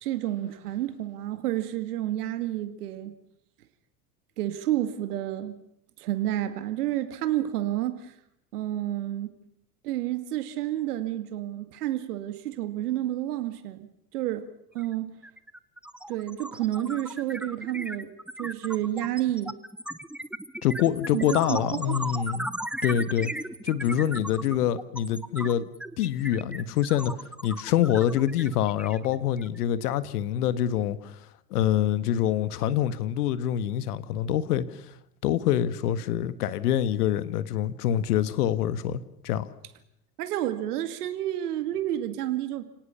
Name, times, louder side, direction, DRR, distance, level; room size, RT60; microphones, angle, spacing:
voice 1, 0.0-3.1 4.4-5.6 6.0-8.1 8.5-9.3 9.8-14.5 14.7-15.1 16.1-18.1 18.4-19.6 21.1-22.0 40.2-42.6, right 13 dB, 70° right, 2.2 m, -30 dB
sound 1, 14.8-14.9 15.2-29.6, right 1 dB, ahead, 1.0 m, -37 dB
voice 2, 20.6-22.5 22.8-23.3 23.6-25.7 26.0-27.1 27.4-31.2 31.5-34.7 35.2-39.5, left 11 dB, 70° left, 1.7 m, -25 dB
29.5 x 18.0 x 7.1 m
hypercardioid pair, 80°, 47 cm